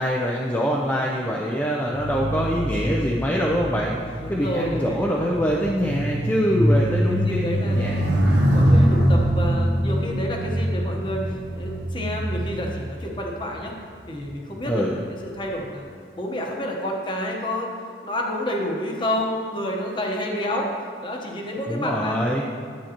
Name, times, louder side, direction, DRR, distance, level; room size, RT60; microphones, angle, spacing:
voice 1, 0.0-8.0 14.6-14.9 21.7-22.4, equal, 10° left, -3 dB, 0.5 m, -24 dB
sound 1, 1.9-13.5 14.2-14.5, equal, 75° right, 1.2 m, -23 dB
voice 2, 4.2-5.3 7.1-8.1 8.3-13.7 14.1-15.0 15.2-15.8 16.1-17.7 18.0-20.7 21.0-22.2, left 1 dB, 25° left, 0 dB, 1.0 m, -29 dB
10.0 x 8.0 x 2.9 m, 2.1 s
head